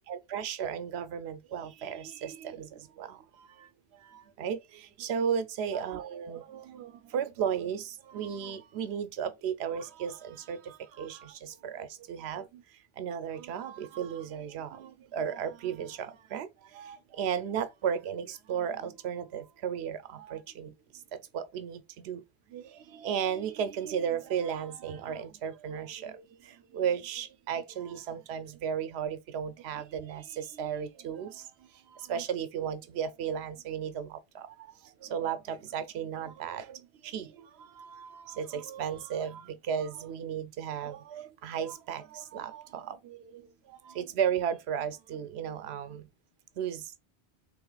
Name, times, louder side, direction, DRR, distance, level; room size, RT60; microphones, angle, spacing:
voice 1, 0.1-3.7 4.0-12.6 13.0-20.7 21.1-22.2 22.5-46.1 46.6-47.0, right 8 dB, 85° right, 0.9 m, -35 dB
3.5 x 3.0 x 3.8 m
omnidirectional pair, 1.1 m